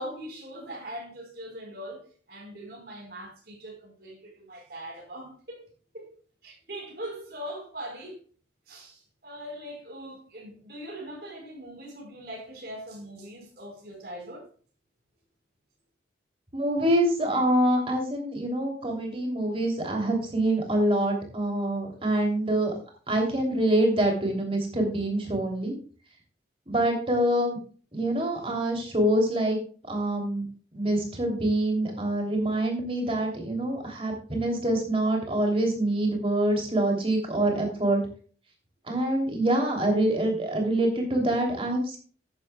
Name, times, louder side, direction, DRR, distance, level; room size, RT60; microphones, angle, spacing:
voice 1, 0.0-6.1 6.4-8.2 8.7-14.5, right 1 dB, 55° right, 4.7 m, -41 dB
voice 2, 16.5-22.7 23.1-25.7 26.7-27.6 27.9-29.6 29.9-30.4 30.7-38.0 38.9-42.0, right 1 dB, 30° right, 3.0 m, -25 dB
13.0 x 10.5 x 2.3 m
head